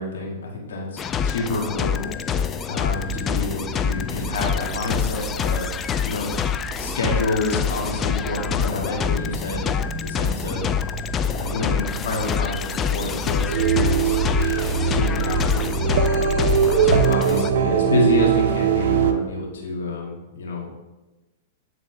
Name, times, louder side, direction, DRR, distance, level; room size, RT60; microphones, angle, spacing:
voice 1, 0.0-2.1 2.4-6.3 6.8-10.7 11.3-14.2 14.8-15.7 16.5-20.7, left 2 dB, 75° left, -2 dB, 1.9 m, -28 dB
sound 1, 1.0-17.5, left 7 dB, 25° left, 0.3 m, -26 dB
sound 2, 2.9-16.2, right 3 dB, 5° left, 1.3 m, -35 dB
sound 3, 13.5-19.1, right 6 dB, 65° right, 0.5 m, -20 dB
9.3 x 3.8 x 3.3 m, 1.1 s
hypercardioid pair, 115°, 0 cm